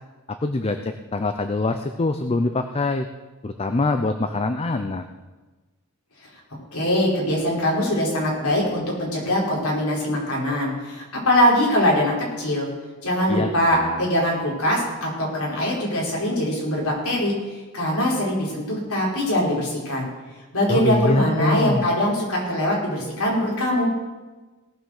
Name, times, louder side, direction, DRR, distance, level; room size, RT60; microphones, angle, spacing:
voice 1, 0.4-3.1 3.4-5.1 13.3-14.0 20.7-21.9, left 2 dB, 25° left, 8 dB, 0.5 m, -24 dB
voice 2, 6.7-12.7 13.0-20.1 20.5-23.9, equal, 80° left, -3 dB, 4.6 m, -22 dB
18.0 x 6.5 x 6.5 m, 1.2 s
head